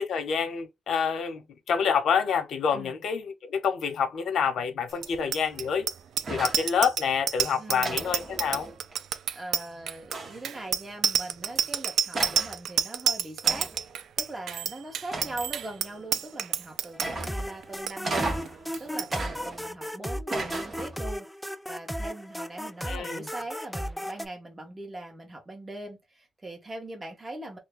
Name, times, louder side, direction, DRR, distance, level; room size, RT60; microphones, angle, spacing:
voice 1, 0.0-1.4 1.7-5.9 6.3-8.7 22.8-23.3, left 6 dB, 80° left, 0.8 m, -27 dB
Bicycle bell, 5.0-17.3 17.6-17.9 18.2-18.5 18.7-19.1, right 9 dB, 85° right, 0.3 m, -28 dB
sound 1, 6.2-6.7 7.8-8.9 10.1-10.6 11.6-11.7 12.1-12.6 13.4-13.9 15.1-15.7 17.0-17.5 18.0-18.6 19.1-19.9 20.3-21.1, right 2 dB, 45° right, 1.3 m, -35 dB
voice 2, 7.6-8.1 9.3-13.7 14.2-18.3 18.8-21.3 21.7-27.6, right 2 dB, 20° right, 1.4 m, -41 dB
sound 2, 16.9-24.3, equal, ahead, 0.3 m, -35 dB
3.1 x 2.2 x 3.8 m
cardioid pair, 95°, 0 cm